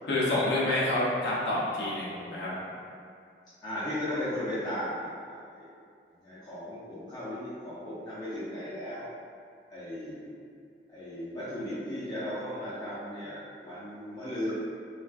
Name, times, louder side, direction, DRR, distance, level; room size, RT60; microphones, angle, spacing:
voice 1, 0.0-2.5, left 1 dB, 75° left, -8 dB, 0.6 m, -28 dB
voice 2, 3.6-5.7 6.2-9.1 9.7-10.3 10.9-14.5, left 1 dB, 25° left, -13 dB, 0.6 m, -36 dB
3.3 x 2.4 x 2.4 m, 2.3 s
head